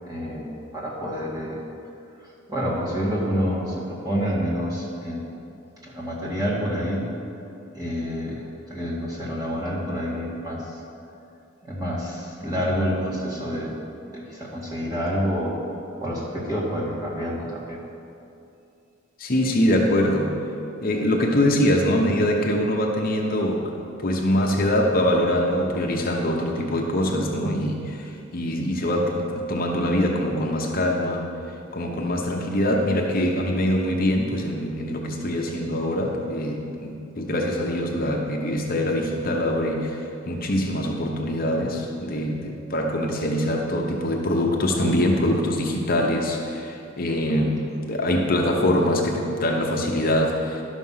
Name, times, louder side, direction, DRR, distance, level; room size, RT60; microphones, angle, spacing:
voice 1, 0.0-1.6 2.5-5.3 5.8-7.1 7.7-10.8 11.6-13.8 14.1-15.6 16.0-17.8, equal, 20° right, -5 dB, 2.0 m, -28 dB
voice 2, 19.2-20.4 20.8-23.7 24.0-31.2 31.7-47.6 47.9-50.6, left 1 dB, 45° left, 0 dB, 0.9 m, -23 dB
12.0 x 6.2 x 5.6 m, 2.6 s
head